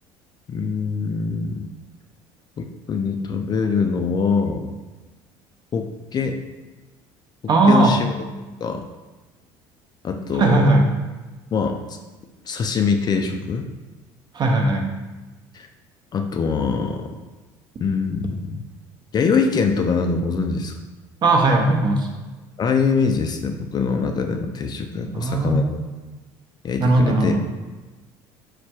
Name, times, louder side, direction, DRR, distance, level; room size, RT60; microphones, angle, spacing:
voice 1, 0.5-1.7 2.6-4.7 5.7-6.4 7.7-8.1 8.6-8.8 10.0-10.9 11.5-12.0 12.4-13.7 15.5-15.7 16.1-17.1 17.8-18.6 19.1-20.7 22.6-25.7 26.6-27.3, left 5 dB, 35° left, 5 dB, 0.4 m, -23 dB
voice 2, 7.5-7.9 10.3-10.9 14.3-14.9 21.2-22.1 25.0-25.8 26.8-27.4, right 2 dB, 40° right, 2 dB, 0.7 m, -18 dB
4.6 x 2.2 x 4.4 m, 1.2 s
supercardioid pair, 95°, 11 cm